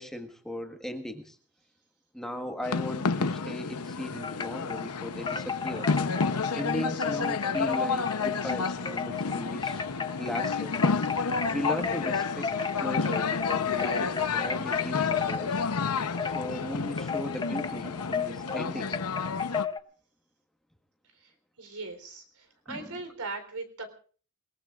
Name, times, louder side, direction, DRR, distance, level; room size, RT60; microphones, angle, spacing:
voice 1, 0.0-1.4 2.1-5.9 6.5-9.8 10.2-10.8 11.5-12.5 12.8-15.6 16.2-18.9 22.7-23.0, left 1 dB, ahead, 5 dB, 1.5 m, -37 dB
sound 1, 2.6-19.7, left 5 dB, 90° left, 0.8 m, -30 dB
Wind chime, 4.2-4.9 5.3-19.8, left 6 dB, 20° left, 0.8 m, -34 dB
voice 2, 21.2-23.9, right 3 dB, 90° right, 7 dB, 3.8 m, -40 dB
28.5 x 19.0 x 2.5 m, 0.42 s
head